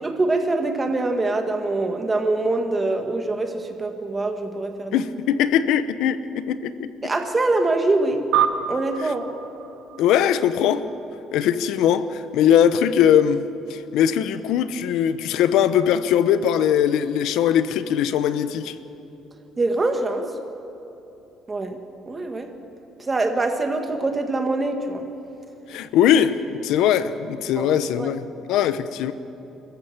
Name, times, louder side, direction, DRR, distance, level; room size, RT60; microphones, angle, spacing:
voice 1, 0.0-5.0 7.0-8.2 8.7-9.3 19.6-20.3 21.5-21.8 22.1-22.5 23.0-25.0 27.6-27.7 28.0-28.1, right 2 dB, 20° right, 6 dB, 1.8 m, -24 dB
voice 2, 4.9-6.9 10.0-10.8 11.3-13.4 13.7-18.7 25.7-28.2 28.5-29.1, left 9 dB, 80° left, 13 dB, 0.9 m, -20 dB
sound 1, 8.3-11.1, right 9 dB, 70° right, 1.0 m, -27 dB
25.5 x 14.5 x 7.4 m, 3.0 s
cardioid pair, 140°, 0 cm